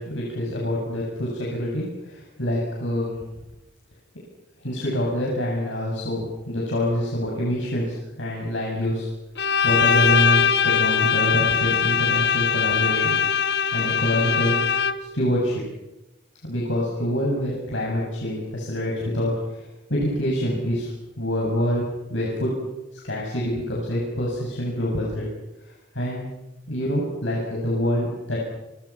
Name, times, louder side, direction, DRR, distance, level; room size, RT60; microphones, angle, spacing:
voice 1, 0.0-3.2 4.6-9.1 9.6-13.2 13.7-14.6 15.1-15.6 16.5-20.9 21.2-22.5 22.9-25.3 25.6-26.3 26.7-28.4, equal, 75° left, -3 dB, 7.7 m, -26 dB
Bowed string instrument, 9.4-15.2, left 6 dB, 55° left, 1.1 m, -21 dB
29.5 x 26.5 x 6.1 m, 0.96 s
head